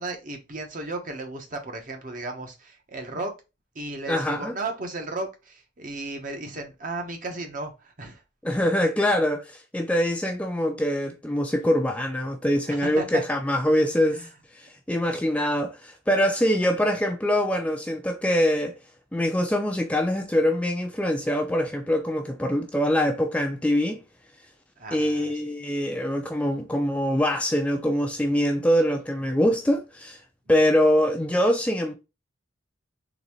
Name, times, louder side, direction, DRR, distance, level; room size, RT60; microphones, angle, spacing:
voice 1, 0.0-3.3 3.7-8.2 12.7-13.2 14.1-14.3 24.8-25.3, right 2 dB, 45° right, 0.9 m, -34 dB
voice 2, 4.1-4.5 8.4-14.2 14.5-18.7 19.1-24.0 24.9-30.2 30.5-31.9, equal, 5° left, 0.4 m, -24 dB
3.9 x 3.2 x 3.0 m
head